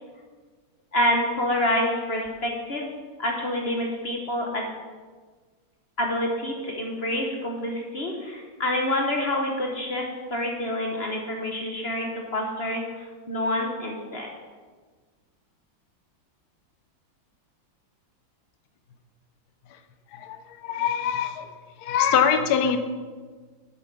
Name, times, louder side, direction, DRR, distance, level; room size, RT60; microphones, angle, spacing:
voice 1, 0.9-2.9 3.2-4.7 6.0-14.3, left 1 dB, 40° left, 0 dB, 1.0 m, -27 dB
voice 2, 20.1-21.5 21.8-22.8, left 8 dB, 65° left, 8 dB, 1.1 m, -23 dB
8.3 x 7.0 x 5.3 m, 1.5 s
omnidirectional pair, 2.1 m